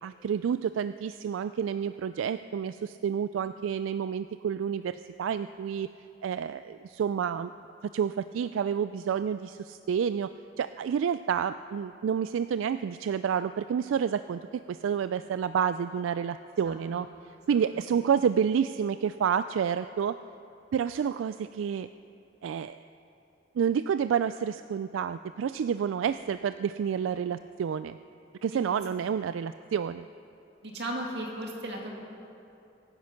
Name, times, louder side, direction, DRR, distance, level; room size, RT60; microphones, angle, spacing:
voice 1, 0.0-5.9 6.2-7.5 7.9-10.3 10.6-17.1 17.5-20.2 20.7-21.9 22.4-22.8 23.6-28.0 28.4-30.1, right 7 dB, 85° right, 12 dB, 0.3 m, -29 dB
voice 2, 16.6-17.0 17.5-17.6 17.9-18.0 28.5-28.7 30.6-31.9, right 1 dB, 60° right, 0 dB, 2.4 m, -37 dB
23.0 x 9.5 x 5.8 m, 2.7 s
head